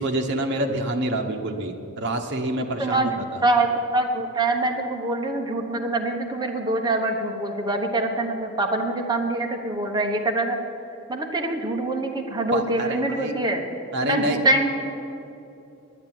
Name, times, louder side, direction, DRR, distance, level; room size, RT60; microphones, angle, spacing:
voice 1, 0.0-3.4 12.5-13.3 13.9-14.4, right 1 dB, 50° right, 3 dB, 1.1 m, -27 dB
voice 2, 2.8-10.6 11.1-13.6 14.0-14.7, right 2 dB, 20° right, 2 dB, 1.1 m, -24 dB
10.0 x 9.0 x 9.2 m, 2.8 s
head